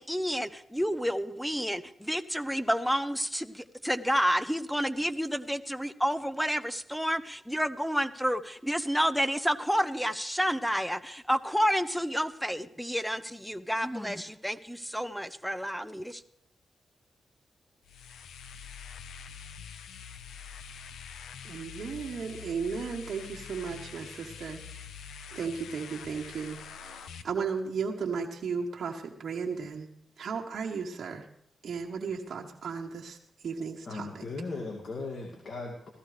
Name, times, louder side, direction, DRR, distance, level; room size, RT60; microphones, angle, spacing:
voice 1, 0.0-16.2, equal, ahead, 13 dB, 0.8 m, -30 dB
sound 1, 17.8-27.2, left 7 dB, 85° left, 0.7 m, -45 dB
voice 2, 21.4-24.6 25.3-26.6 26.9-29.9 30.2-31.2 31.6-33.2 33.4-34.2, right 5 dB, 70° right, -1 dB, 1.2 m, -35 dB
voice 3, 33.8-35.9, left 3 dB, 60° left, 0 dB, 2.3 m, -37 dB
16.5 x 13.5 x 3.3 m, 0.75 s
cardioid pair, 60°, 0 cm